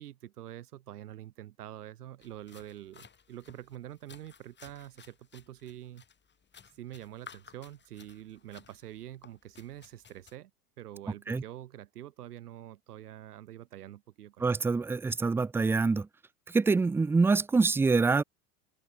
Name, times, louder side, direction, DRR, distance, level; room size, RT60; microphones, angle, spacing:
voice 1, 0.0-6.0 6.7-10.5 10.8-14.6, right 12 dB, 70° right, 6.2 m, -46 dB
sound 1, 2.2-10.4, left 6 dB, 20° left, 6.8 m, -56 dB
voice 2, 14.4-16.1 16.5-18.2, right 4 dB, 5° right, 0.5 m, -25 dB
open air
figure-of-eight pair, 85°, 48 cm